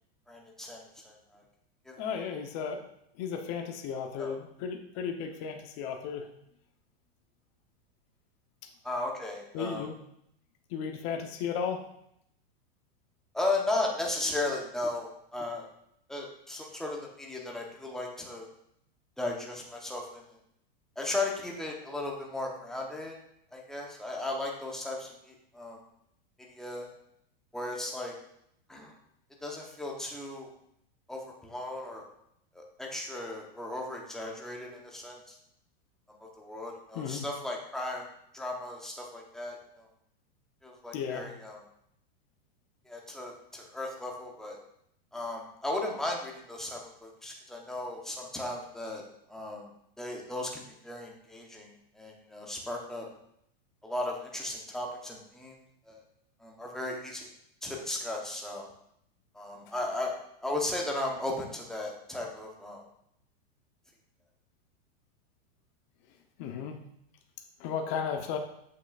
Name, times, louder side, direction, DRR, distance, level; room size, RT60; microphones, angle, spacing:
voice 1, 0.3-1.4 1.9-2.0 4.2-4.4 8.8-9.9 13.3-15.7 16.1-18.5 19.2-20.3 21.0-23.1 23.5-25.8 26.5-26.9 27.5-28.1 28.7-28.9 29.4-30.5 31.1-32.1 32.5-35.4 36.2-38.1 38.3-39.9 40.6-41.6 42.9-44.6 45.1-49.0 49.3-49.7 50.0-53.1 53.8-55.6 55.9-56.0 56.4-57.3 57.6-58.7 59.3-60.2 60.4-62.8, left 2 dB, ahead, -1 dB, 1.0 m, -36 dB
voice 2, 2.0-2.8 3.1-6.3 9.5-10.0 10.7-11.8 36.9-37.3 40.9-41.3 66.4-66.8 67.6-68.4, left 7 dB, 45° left, 3 dB, 1.0 m, -34 dB
7.4 x 6.0 x 2.5 m, 0.74 s
supercardioid pair, 135°, 31 cm